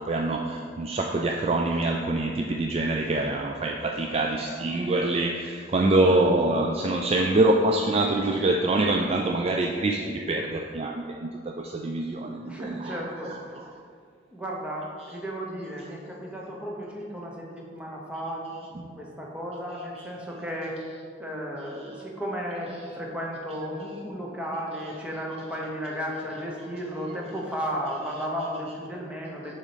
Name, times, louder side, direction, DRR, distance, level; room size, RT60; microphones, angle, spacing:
voice 1, 0.0-13.0, right 2 dB, 35° right, 2 dB, 0.3 m, -25 dB
voice 2, 12.5-13.6 14.3-20.8 21.2-29.5, equal, 5° right, -3 dB, 1.0 m, -34 dB
7.2 x 4.2 x 5.0 m, 2.1 s
head